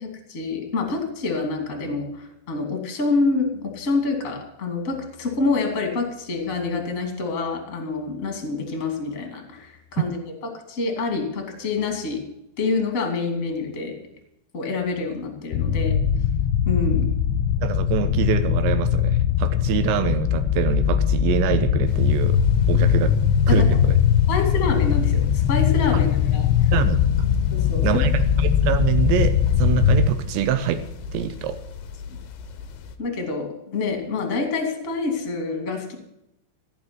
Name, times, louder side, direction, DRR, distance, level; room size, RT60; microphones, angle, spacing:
voice 1, 0.0-10.2 10.7-12.2 12.6-13.9 14.5-16.0 16.7-17.1 23.5-23.7 24.3-26.5 27.5-28.0 33.0-35.9, left 3 dB, 25° left, 4 dB, 2.0 m, -26 dB
sound 1, 15.5-30.1, left 9 dB, 90° left, 3.3 m, -20 dB
voice 2, 17.6-22.4 22.7-23.2 23.5-24.0 26.7-27.3 27.8-30.8 31.1-31.6, right 10 dB, 80° right, 11 dB, 2.7 m, -25 dB
sound 2, 21.9-33.0, left 6 dB, 75° left, 2.1 m, -36 dB
17.0 x 6.0 x 9.7 m, 0.81 s
omnidirectional pair, 5.6 m